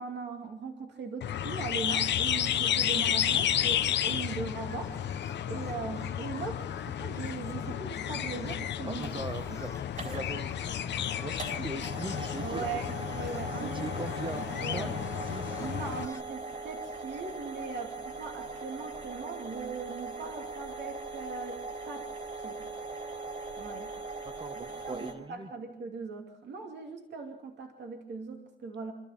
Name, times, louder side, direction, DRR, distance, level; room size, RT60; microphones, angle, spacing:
voice 1, 0.0-4.9 5.5-9.1 9.5-9.6 12.4-13.9 14.6-14.9 15.6-22.1 22.4-22.6 23.6-23.9 24.9-28.9, right 4 dB, 60° right, 2 dB, 2.6 m, -39 dB
sound 1, 1.2-16.1, left 10 dB, 60° left, 0.9 m, -32 dB
sound 2, 3.2-16.2, left 3 dB, 15° left, 1.2 m, -50 dB
voice 2, 8.9-9.7 10.0-12.8 13.4-14.9 15.3-15.6 24.2-25.5, right 3 dB, 25° right, 11 dB, 1.4 m, -41 dB
sound 3, 8.9-25.1, right 3 dB, 40° right, 5.3 m, -41 dB
27.0 x 13.5 x 7.2 m, 0.89 s
cardioid pair, 90°, 20 cm